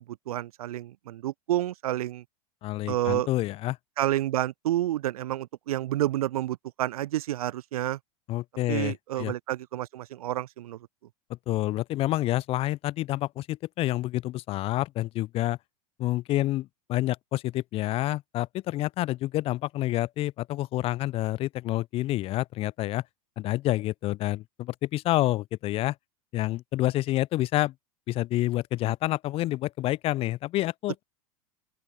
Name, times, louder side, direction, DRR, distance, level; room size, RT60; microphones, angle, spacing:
voice 1, 0.1-2.2 2.9-3.3 4.0-8.0 8.7-10.8, right 13 dB, 70° right, 0.4 m, -29 dB
voice 2, 2.6-3.8 8.3-9.3 11.3-15.6 16.0-23.0 23.4-26.0 26.3-27.7 28.1-31.0, left 16 dB, 30° left, 0.4 m, -28 dB
open air
hypercardioid pair, 90°, 20 cm